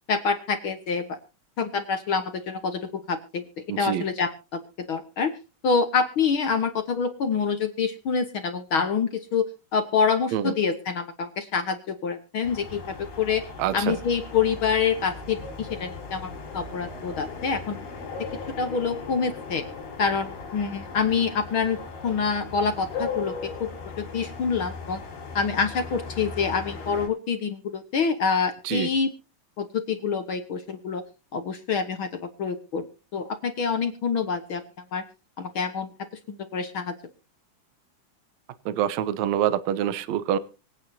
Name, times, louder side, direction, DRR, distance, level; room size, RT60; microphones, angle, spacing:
voice 1, 0.1-1.2 1.6-2.8 3.1-3.4 3.8-4.6 4.9-5.3 5.6-9.5 9.7-13.4 13.7-17.8 18.6-19.6 20.0-21.8 22.0-23.7 24.0-25.0 25.3-29.1 29.6-31.0 31.3-32.8 33.1-34.6 34.9-35.0 35.4-35.9 36.3-36.9, left 5 dB, 60° left, 8 dB, 1.3 m, -26 dB
voice 2, 3.7-4.0 10.3-10.5 13.6-14.0 28.7-28.9 38.7-40.4, right 10 dB, 65° right, 15 dB, 2.0 m, -26 dB
sound 1, 12.4-27.1, left 4 dB, 85° left, 6.1 m, -38 dB
25.0 x 8.9 x 2.7 m, 0.33 s
omnidirectional pair, 3.9 m